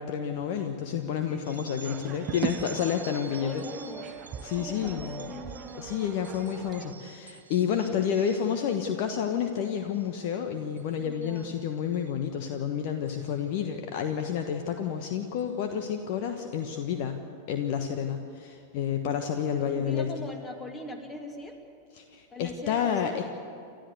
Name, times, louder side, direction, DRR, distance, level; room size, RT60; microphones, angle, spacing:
voice 1, 0.0-3.6 4.4-5.3 5.8-17.2 17.5-20.3 21.9-23.2, left 8 dB, 50° left, 6 dB, 1.2 m, -30 dB
voice 2, 1.3-2.7 3.4-4.1 4.6-5.9 11.0-11.6 19.5-21.6 22.3-23.2, left 2 dB, 20° left, 4 dB, 2.9 m, -42 dB
sound 1, 1.4-8.7 9.2-9.6 9.9-10.4 10.8-12.1 13.1-13.3 14.3-14.4 15.4-15.5 15.9-16.0 16.5-16.8, right 4 dB, 75° right, 1.4 m, -49 dB
sound 2, 1.8-6.9, right 9 dB, 30° right, 0.9 m, -39 dB
29.5 x 13.0 x 8.2 m, 2.6 s
figure-of-eight pair, 90°, 0 cm